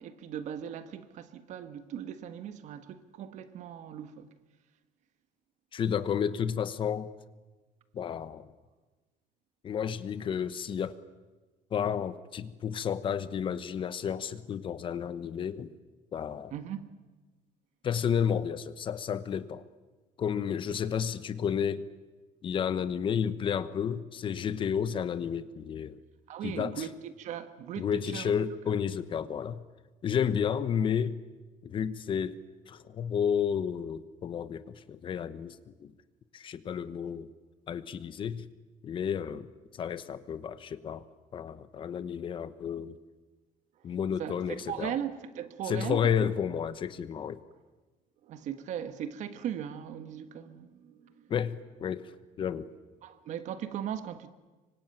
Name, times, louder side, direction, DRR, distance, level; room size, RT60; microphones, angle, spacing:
voice 1, 0.0-4.3 16.5-16.9 26.3-28.3 28.7-28.8 44.2-46.3 48.2-51.3 53.0-54.3, right 9 dB, 55° right, 1.6 m, -38 dB
voice 2, 5.7-7.1 7.9-8.5 9.6-11.0 11.7-15.7 16.1-16.5 17.8-19.6 20.2-21.8 22.4-26.0 26.4-26.9 27.8-29.6 30.0-31.2 31.6-32.4 32.7-35.9 36.3-37.3 37.7-38.5 38.8-41.0 41.3-42.9 43.8-44.9 45.6-47.4 51.3-52.1 52.4-52.7, left 8 dB, 35° left, 1.0 m, -31 dB
25.5 x 24.5 x 9.2 m
cardioid pair, 160°, 15 cm